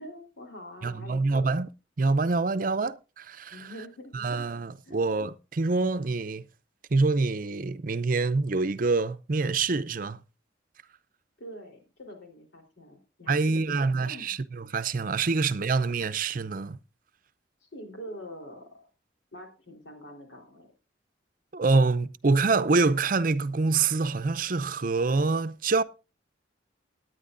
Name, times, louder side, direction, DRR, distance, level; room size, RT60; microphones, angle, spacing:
voice 1, 0.0-1.5 3.5-4.2 4.9-5.0 11.4-14.3 17.6-18.9 19.3-20.7, equal, 85° left, 3.7 m, -45 dB
voice 2, 0.8-1.7 2.0-3.7 4.1-6.5 6.9-10.2 13.3-16.8 21.5-25.8, right 3 dB, 45° right, 0.6 m, -26 dB
18.0 x 9.6 x 2.5 m
head